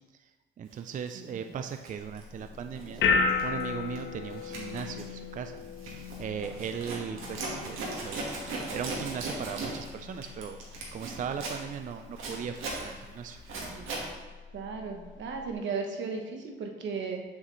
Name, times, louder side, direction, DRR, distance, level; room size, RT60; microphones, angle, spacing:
voice 1, 0.6-3.0 3.4-5.6 5.8-8.2 8.7-10.6 10.9-13.4, right 7 dB, 40° right, 7 dB, 0.4 m, -38 dB
Zipper (clothing), 0.9-1.1 1.6-3.0 3.3-3.6 4.0-14.1, right 2 dB, 85° right, 1.7 m, -38 dB
voice 2, 1.1-1.5 13.5-14.0 14.5-17.2, right 5 dB, 70° right, 3 dB, 1.1 m, -36 dB
sound 1, 2.0-15.5, left 5 dB, 70° left, 0.9 m, -36 dB
7.1 x 6.4 x 3.1 m, 1.2 s
cardioid pair, 90°, 20 cm